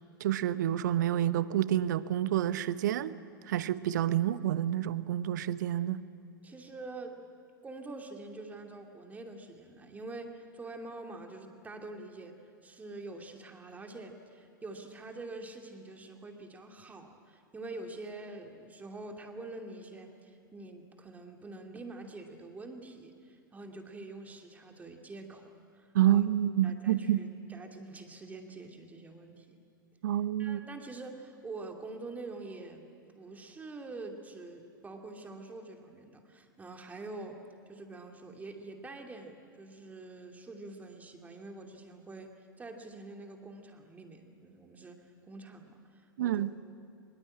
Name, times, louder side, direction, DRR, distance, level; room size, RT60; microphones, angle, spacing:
voice 1, 0.2-3.1 3.5-6.0 25.9-27.2 30.0-30.6 46.2-46.5, right 12 dB, 55° right, 16 dB, 0.8 m, -28 dB
voice 2, 6.4-7.2 7.6-12.3 12.6-26.2 26.6-29.6 30.4-32.9 33.1-46.5, right 2 dB, 15° right, 3 dB, 2.7 m, -46 dB
23.5 x 22.0 x 8.8 m, 2.5 s
figure-of-eight pair, 95°, 11 cm